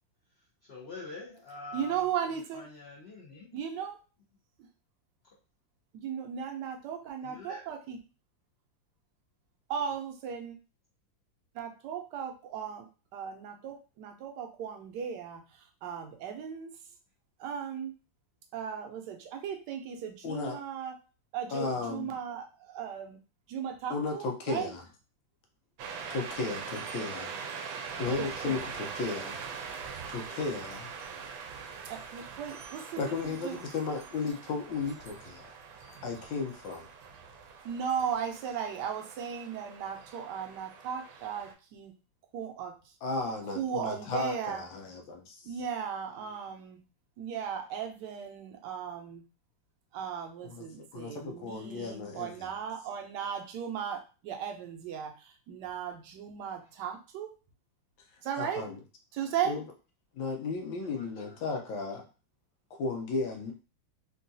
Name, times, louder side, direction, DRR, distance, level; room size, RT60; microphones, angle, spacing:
voice 1, 0.7-3.6 7.2-7.7 26.7-26.9 46.2-46.5 56.6-56.8 60.9-61.3, left 3 dB, 70° left, -5 dB, 0.6 m, -46 dB
voice 2, 1.7-2.7 3.5-4.0 5.9-8.0 9.7-10.6 11.5-12.9 13.1-15.4 15.8-16.7 17.4-17.9 18.5-20.9 21.3-23.2 23.5-24.7 28.2-28.5 31.9-33.6 37.6-41.9 42.3-42.7 43.5-44.6 45.4-46.8 47.2-49.2 49.9-57.3 58.2-58.6 59.1-59.6, right 8 dB, 70° right, 4 dB, 1.2 m, -36 dB
voice 3, 20.2-20.6 21.5-22.1 23.9-24.8 26.1-27.4 28.0-29.4 30.1-30.9 33.0-35.5 36.0-36.9 43.0-45.5 50.4-52.5 58.4-58.8 59.4-59.6 60.1-62.1 62.7-63.5, left 4 dB, 85° left, 2 dB, 1.5 m, -35 dB
sound 1, 25.8-41.5, right 6 dB, 90° right, 1.4 m, -43 dB
3.7 x 2.3 x 2.6 m, 0.33 s
omnidirectional pair, 2.1 m